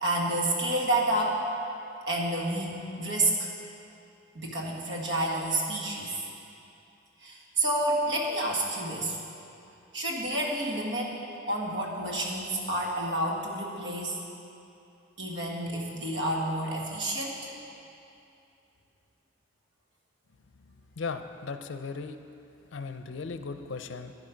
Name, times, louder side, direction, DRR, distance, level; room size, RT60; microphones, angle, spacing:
voice 1, 0.0-1.4 2.1-3.5 4.3-6.2 7.2-9.2 9.9-11.1 11.5-14.2 15.2-17.5, right 1 dB, 65° right, -2 dB, 1.7 m, -29 dB
voice 2, 20.6-22.2 22.7-24.1, left 4 dB, 70° left, 8 dB, 0.5 m, -37 dB
10.5 x 10.0 x 5.1 m, 2.7 s
head